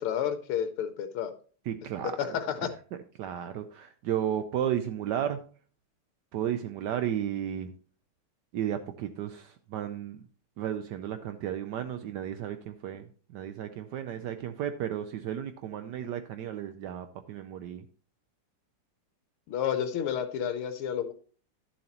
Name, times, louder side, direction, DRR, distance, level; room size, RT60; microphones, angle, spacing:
voice 1, 0.0-1.3 2.0-2.7 19.5-21.1, left 9 dB, 85° left, 10 dB, 1.6 m, -30 dB
voice 2, 1.7-2.1 3.2-5.4 6.3-7.7 8.5-10.2 10.6-13.0 13.3-17.8, right 10 dB, 85° right, 9 dB, 0.9 m, -33 dB
11.5 x 7.2 x 2.9 m, 0.41 s
omnidirectional pair, 2.4 m